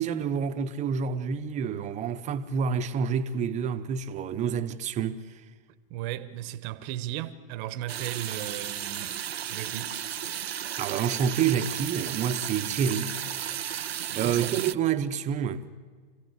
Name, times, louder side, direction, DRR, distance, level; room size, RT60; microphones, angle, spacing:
voice 1, 0.0-5.2 10.8-13.1 14.1-15.6, right 7 dB, 25° right, 1.0 m, -28 dB
voice 2, 5.9-9.2 9.5-10.0 14.2-14.6, right 13 dB, 40° right, 1.2 m, -36 dB
sound 1, 7.9-14.7, right 10 dB, 90° right, 0.6 m, -34 dB
26.0 x 16.0 x 8.3 m
hypercardioid pair, 120°, 30 cm